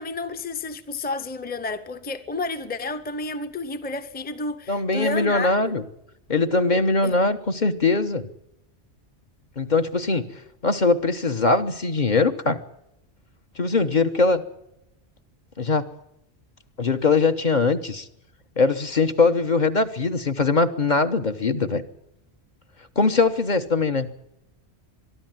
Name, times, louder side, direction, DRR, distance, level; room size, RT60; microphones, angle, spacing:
voice 1, 0.0-5.7 7.0-7.2, left 3 dB, 10° left, 0.8 m, -31 dB
voice 2, 4.7-5.8 6.3-8.3 9.6-10.3 10.6-12.6 13.6-14.4 15.6-15.9 16.8-18.1 18.6-21.8 23.0-24.1, left 3 dB, 45° left, 1.2 m, -21 dB
23.0 x 12.5 x 9.2 m
omnidirectional pair, 1.1 m